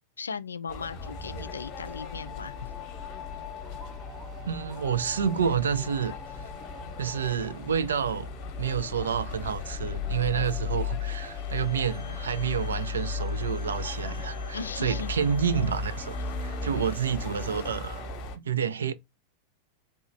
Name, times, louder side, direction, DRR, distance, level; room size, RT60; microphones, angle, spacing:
voice 1, 0.2-2.5 12.1-12.2 14.0-14.2 14.5-15.1 16.2-16.3, left 5 dB, 75° left, 0.3 m, -37 dB
sound 1, 0.7-18.4, left 4 dB, 40° left, 0.8 m, -36 dB
sound 2, 1.0-15.4 15.7-15.8 16.1-18.1, left 4 dB, 10° right, 0.8 m, -48 dB
voice 2, 4.4-6.2 7.0-8.3 8.6-16.2 16.4-18.0 18.4-18.9, right 7 dB, 70° right, 0.4 m, -29 dB
Bowed string instrument, 11.3-17.1, left 3 dB, 85° right, 1.0 m, -51 dB
3.3 x 2.8 x 2.5 m
figure-of-eight pair, 90°, 0 cm